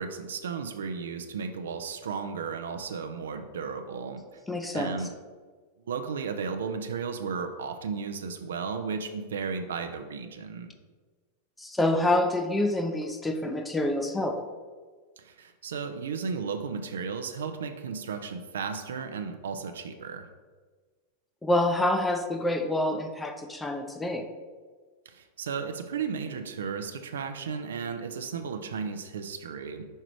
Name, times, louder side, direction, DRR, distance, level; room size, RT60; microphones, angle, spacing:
voice 1, 0.0-4.2 4.7-5.1 5.8-10.7 15.2-20.3 25.1-29.8, right 5 dB, 65° right, 8 dB, 0.5 m, -34 dB
voice 2, 4.5-5.0 11.6-14.4 21.4-24.3, left 1 dB, 10° left, 6 dB, 0.6 m, -27 dB
5.5 x 4.9 x 4.5 m, 1.4 s
figure-of-eight pair, 90°, 0 cm